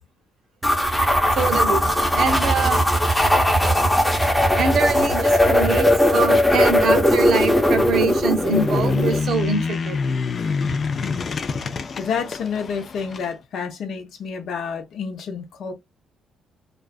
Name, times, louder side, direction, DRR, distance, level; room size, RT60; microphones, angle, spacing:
sound 1, 0.6-9.2, left 1 dB, 10° left, 0.8 m, -19 dB
voice 1, 1.3-2.8 3.6-3.7 4.6-10.0, right 4 dB, 65° right, 0.7 m, -24 dB
sound 2, 8.3-13.3, left 4 dB, 45° left, 0.4 m, -26 dB
voice 2, 12.0-15.7, left 6 dB, 70° left, 0.7 m, -29 dB
2.4 x 2.2 x 2.3 m
cardioid pair, 90°, 0 cm